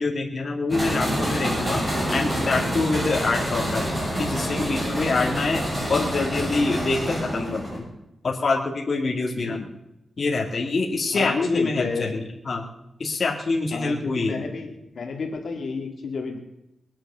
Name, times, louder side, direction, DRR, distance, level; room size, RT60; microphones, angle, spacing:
voice 1, 0.0-1.8 2.1-3.8 4.2-5.6 5.9-7.8 8.2-9.6 10.2-12.6 13.0-14.4, left 3 dB, 40° left, -2 dB, 2.2 m, -25 dB
sound 1, 0.7-7.8, equal, 25° right, 6.9 m, -27 dB
voice 2, 9.4-9.7 11.1-12.2 13.7-16.4, left 4 dB, 55° left, 3 dB, 2.3 m, -30 dB
20.5 x 8.8 x 6.8 m, 0.87 s
wide cardioid pair, 150°, 0 cm